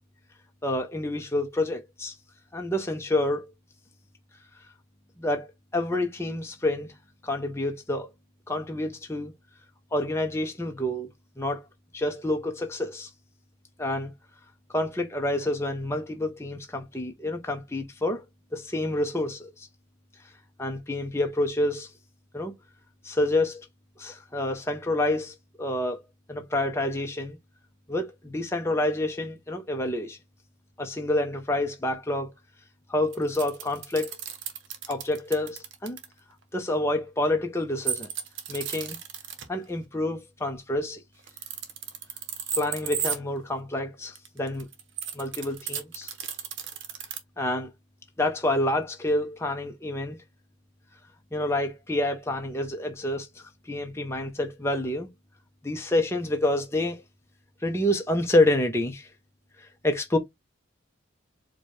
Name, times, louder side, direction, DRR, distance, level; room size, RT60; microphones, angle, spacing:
voice 1, 0.6-2.2 2.5-3.5 5.2-6.9 7.2-8.1 8.5-9.3 9.9-11.1 11.4-11.7 11.9-13.1 13.8-14.1 14.7-18.2 18.5-19.7 20.6-21.9 22.3-22.5 23.0-23.7 24.0-26.0 26.3-27.4 27.9-30.2 30.8-32.3 32.9-34.2 34.9-36.0 36.5-38.1 38.5-39.0 39.5-41.0 42.5-44.7 45.1-46.1 47.4-47.7 48.2-50.2 51.3-55.1 55.6-57.0 57.6-59.1 59.6-60.2, left 1 dB, 15° left, 0.6 m, -28 dB
sound 1, 33.1-36.1 37.8-39.5 41.2-43.2 44.1-47.2, right 8 dB, 65° right, 0.8 m, -34 dB
4.5 x 2.2 x 3.1 m
head